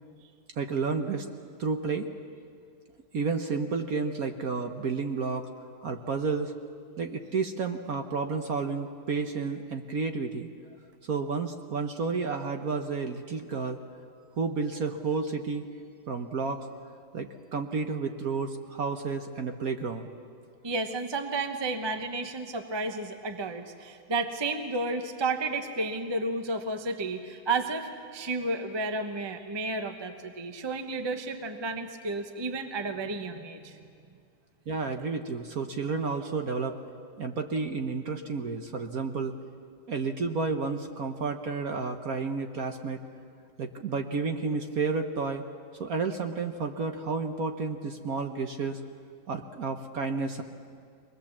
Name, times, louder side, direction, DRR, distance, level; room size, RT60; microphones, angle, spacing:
voice 1, 0.6-1.3 1.6-2.1 3.1-5.5 5.8-6.5 7.0-10.5 11.1-13.8 14.4-15.7 16.1-16.7 17.1-20.1 34.7-36.8 37.2-39.3 39.9-43.0 43.6-45.4 45.8-48.8 49.3-50.4, right 4 dB, 50° right, 5 dB, 1.2 m, -31 dB
voice 2, 20.6-33.8, right 3 dB, 20° right, 6 dB, 0.7 m, -32 dB
23.5 x 20.0 x 7.3 m, 2.2 s
omnidirectional pair, 2.3 m